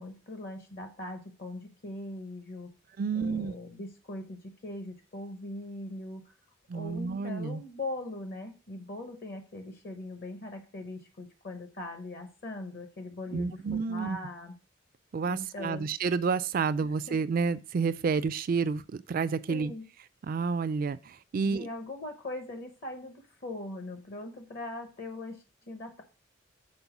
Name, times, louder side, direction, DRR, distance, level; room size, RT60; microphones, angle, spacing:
voice 1, 0.0-2.7 3.1-6.3 6.7-14.5 15.3-15.9 16.8-17.2 19.5-19.9 21.4-26.0, left 2 dB, 45° left, 0.8 m, -41 dB
voice 2, 3.0-3.5 6.7-7.6 13.3-14.2 15.1-19.7 20.2-21.7, right 5 dB, 45° right, 0.3 m, -30 dB
5.4 x 4.3 x 5.9 m
head